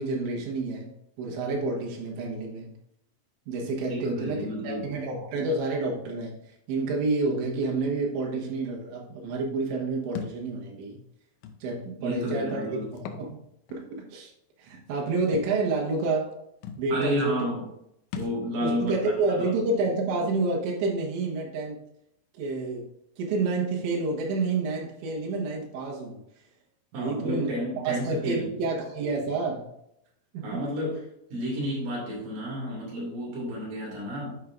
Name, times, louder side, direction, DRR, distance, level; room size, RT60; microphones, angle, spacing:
voice 1, 0.0-2.7 3.5-11.0 11.6-13.4 13.7-14.3 14.6-16.3 16.8-17.5 18.6-21.8 22.3-22.9 23.2-26.2 26.9-27.5 27.8-29.7 30.5-30.6, right 3 dB, 85° right, -2 dB, 3.7 m, -29 dB
voice 2, 3.9-4.9 12.0-12.9 16.9-17.6 18.2-18.9 19.3-19.8 26.9-28.6 30.4-31.0 31.3-34.4, equal, 55° right, -4 dB, 4.1 m, -31 dB
Thump thud, 10.2-10.4 11.4-11.6 12.9-13.3 13.7-13.8 15.3-15.5 16.3-16.4 16.6-16.9 18.1-18.4, left 7 dB, 90° left, 3.1 m, -37 dB
10.5 x 6.1 x 2.6 m, 0.78 s
omnidirectional pair, 5.1 m